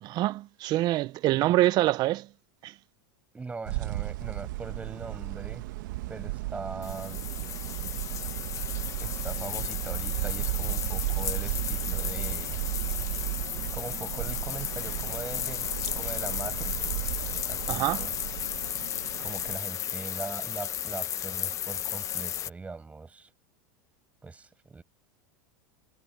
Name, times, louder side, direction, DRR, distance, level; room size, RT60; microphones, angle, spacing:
voice 1, 0.0-2.3 2.6-2.7 17.7-18.1, right 16 dB, 40° right, 0.8 m, -25 dB
voice 2, 1.3-1.6 3.3-5.6 6.1-7.3 9.0-12.6 13.2-13.4 13.7-17.0 17.5-18.1 19.2-23.3 24.2-24.8, right 4 dB, 15° right, 7.8 m, -41 dB
sound 1, 3.7-19.6, right 19 dB, 70° right, 1.4 m, -34 dB
sound 2, 6.8-22.5, left 10 dB, 30° left, 1.1 m, -34 dB
supercardioid pair, 130°, 11 cm